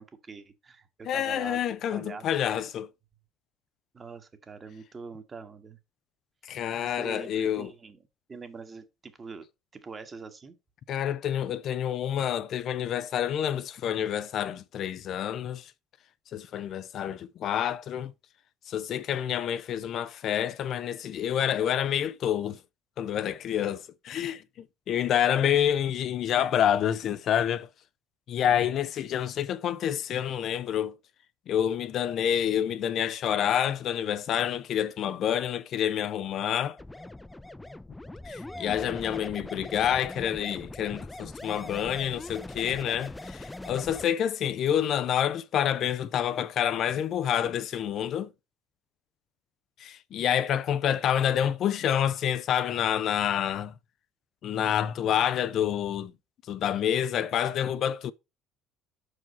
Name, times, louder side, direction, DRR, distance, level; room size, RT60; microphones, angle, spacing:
voice 1, 0.0-1.6 1.9-2.2 2.5-2.7 3.9-5.8 6.8-8.0 8.3-9.5 9.7-10.6, right 4 dB, 30° right, 1.5 m, -44 dB
voice 2, 1.1-2.9 6.4-7.7 10.9-15.7 16.3-18.1 18.7-22.6 23.0-27.7 28.3-31.0 31.5-36.8 38.3-48.3 49.8-53.7 54.4-56.1 56.5-58.1, left 9 dB, 55° left, 0.5 m, -28 dB
sound 1, 36.8-44.1, left 2 dB, 10° left, 0.6 m, -41 dB
5.9 x 4.9 x 5.4 m
hypercardioid pair, 65°, 0 cm